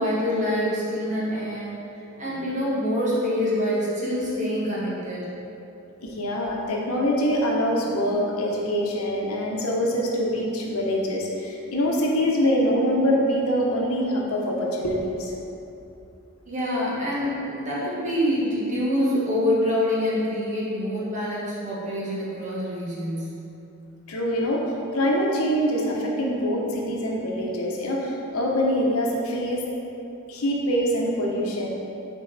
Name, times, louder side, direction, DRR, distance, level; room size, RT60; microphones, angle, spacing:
voice 1, 0.0-1.7 2.2-5.3 16.5-23.3, left 1 dB, 35° right, -7 dB, 1.4 m, -26 dB
voice 2, 6.0-15.3 24.1-29.8 30.3-31.7, equal, 80° left, -1 dB, 0.9 m, -24 dB
6.8 x 4.4 x 3.3 m, 2.9 s
head